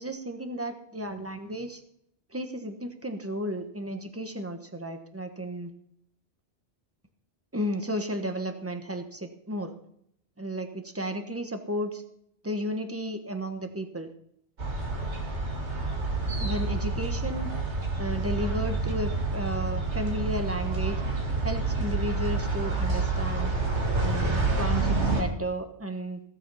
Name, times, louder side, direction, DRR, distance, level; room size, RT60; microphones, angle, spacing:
voice 1, 0.0-1.8 2.3-5.7 7.5-9.7 10.4-12.0 12.4-14.1 16.4-17.5 18.0-21.0 21.4-23.5 24.0-26.2, equal, 15° right, 7 dB, 1.2 m, -33 dB
sound 1, 14.6-25.2, right 3 dB, 85° right, 2.6 m, -28 dB
16.5 x 7.1 x 5.6 m, 0.72 s
omnidirectional pair, 1.1 m